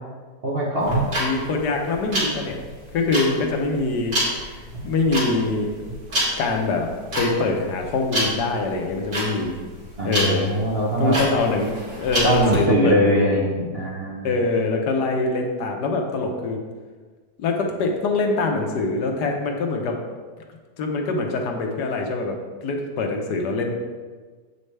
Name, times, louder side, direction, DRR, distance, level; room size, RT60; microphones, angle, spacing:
voice 1, 0.4-1.0 10.0-11.3 12.2-14.3, right 1 dB, 45° right, -4 dB, 0.9 m, -22 dB
sound 1, 0.8-12.6, equal, 60° right, 2.9 m, -27 dB
voice 2, 1.2-2.6 2.9-4.1 4.4-5.9 6.4-6.9 7.2-9.6 10.0-10.5 11.0-13.4 14.2-16.6 17.4-20.0 20.8-22.3 22.6-23.8, left 3 dB, 70° left, 3 dB, 1.4 m, -24 dB
8.1 x 5.4 x 3.3 m, 1.4 s
omnidirectional pair, 1.9 m